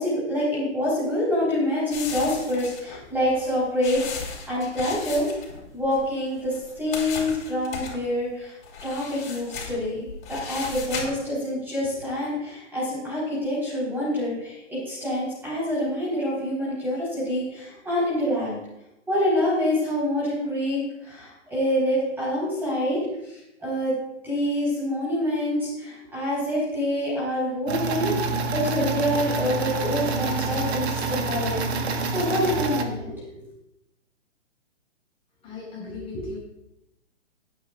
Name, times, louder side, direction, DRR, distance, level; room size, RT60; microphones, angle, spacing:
voice 1, 0.0-5.3 5.7-8.5 8.8-18.5 19.1-24.0 24.2-33.4, left 1 dB, 5° right, -9 dB, 4.3 m, -26 dB
sound 1, 1.9-6.1 6.4-8.0 8.6-11.3, left 5 dB, 50° left, 4.5 m, -36 dB
sound 2, 27.7-32.8, right 3 dB, 60° right, 1.6 m, -27 dB
voice 2, 35.4-36.4, left 2 dB, 15° left, -4 dB, 4.7 m, -35 dB
19.5 x 9.1 x 2.5 m, 0.85 s
hypercardioid pair, 155°, 37 cm